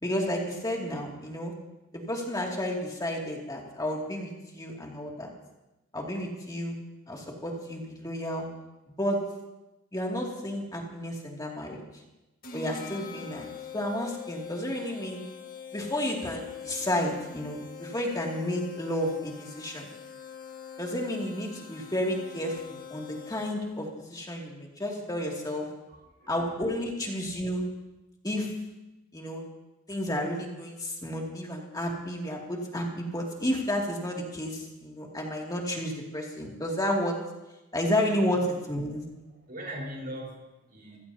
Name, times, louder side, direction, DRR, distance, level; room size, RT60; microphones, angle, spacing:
voice 1, 0.0-1.5 1.9-5.3 5.9-6.7 7.1-8.5 9.0-9.2 9.9-11.8 12.5-13.5 13.7-15.2 15.7-19.9 20.8-25.7 26.3-27.7 28.2-28.5 29.1-29.4 29.9-37.2 37.7-39.0, left 1 dB, 15° left, -1 dB, 2.6 m, -31 dB
sound 1, 12.4-23.8, left 7 dB, 40° left, 1.6 m, -44 dB
voice 2, 25.9-26.4 39.5-41.0, equal, 45° right, -1 dB, 4.6 m, -40 dB
28.0 x 15.5 x 2.9 m, 1.0 s
head